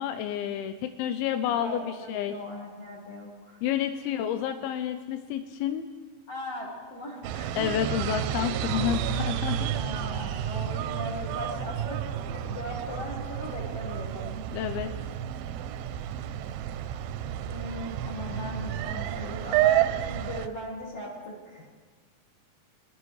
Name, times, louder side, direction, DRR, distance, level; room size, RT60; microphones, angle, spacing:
voice 1, 0.0-2.4 3.6-5.9 7.6-9.7 14.5-14.9, left 10 dB, 90° left, 8 dB, 2.5 m, -30 dB
voice 2, 1.5-4.1 6.3-7.9 8.4-8.9 9.7-12.0 12.3-14.3 17.5-21.7, left 1 dB, 50° left, -5 dB, 2.2 m, -39 dB
sound 1, 7.2-20.5, right 11 dB, 90° right, 2.5 m, -30 dB
23.0 x 11.0 x 3.2 m, 1.4 s
omnidirectional pair, 4.3 m